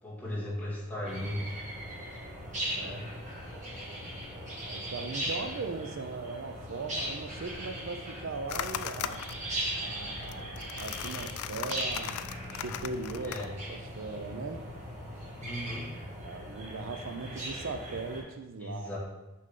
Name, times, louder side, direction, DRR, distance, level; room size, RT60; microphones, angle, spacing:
voice 1, 0.0-1.5 2.7-3.1 13.2-13.5 15.4-15.9 18.6-19.0, left 1 dB, 10° left, -9 dB, 2.1 m, -37 dB
sound 1, 1.0-18.2, right 1 dB, 35° right, 1.8 m, -39 dB
voice 2, 4.7-9.2 9.8-12.2 12.5-13.4 13.7-14.7 16.2-18.9, right 3 dB, 60° right, 7 dB, 0.4 m, -39 dB
sound 2, 8.5-13.5, left 9 dB, 85° left, 0.3 m, -39 dB
6.5 x 5.3 x 3.7 m, 1.0 s
head